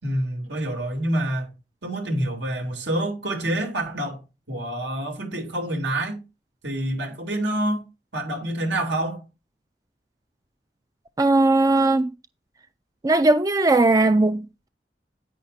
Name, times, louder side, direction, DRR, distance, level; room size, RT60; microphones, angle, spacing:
voice 1, 0.0-1.5 1.8-4.2 4.5-6.2 6.6-7.8 8.1-9.2, right 1 dB, 85° right, 3.1 m, -27 dB
voice 2, 11.2-12.1 13.0-14.7, right 2 dB, 20° right, 0.4 m, -19 dB
9.9 x 9.2 x 2.7 m
head